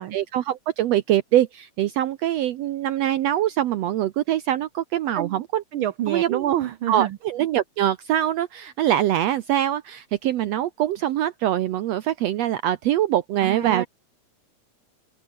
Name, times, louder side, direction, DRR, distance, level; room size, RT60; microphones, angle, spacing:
voice 1, 0.1-5.6 6.1-6.4 6.9-13.9, right 12 dB, 70° right, 1.9 m, -23 dB
voice 2, 5.7-7.2 13.4-13.9, right 12 dB, 85° right, 1.1 m, -27 dB
omnidirectional pair, 3.3 m